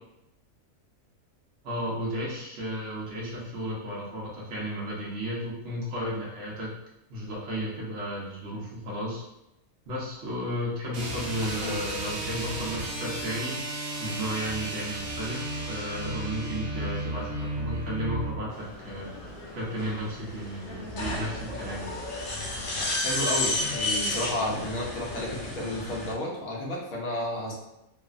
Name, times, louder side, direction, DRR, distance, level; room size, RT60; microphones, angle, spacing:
voice 1, 1.6-6.7 7.1-9.2 9.9-13.6 14.0-19.1 19.5-21.9, equal, 65° right, -5 dB, 1.0 m, -33 dB
sound 1, 10.9-18.4, right 1 dB, 85° right, 1.1 m, -34 dB
voice 2, 11.4-11.8 23.0-27.5, left 1 dB, 90° left, -3 dB, 1.2 m, -32 dB
sound 2, 18.5-26.1, left 2 dB, 60° left, 0.5 m, -32 dB
3.1 x 2.0 x 2.4 m, 0.87 s
omnidirectional pair, 1.4 m